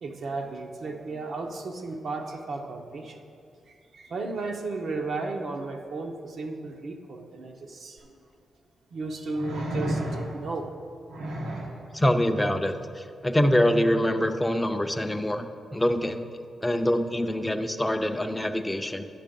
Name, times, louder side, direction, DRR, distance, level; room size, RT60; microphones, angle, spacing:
voice 1, 0.0-3.2 3.7-8.0 8.9-10.7, right 3 dB, 60° right, 2 dB, 0.8 m, -34 dB
sound 1, 8.0-8.1 9.3-10.5 11.1-11.8 13.7-13.8, right 1 dB, 90° right, 1.3 m, -32 dB
voice 2, 11.9-15.5 15.7-16.2 16.6-19.0, left 1 dB, 5° left, 6 dB, 0.5 m, -25 dB
10.0 x 6.5 x 5.2 m, 2.4 s
wide cardioid pair, 140°, 0 cm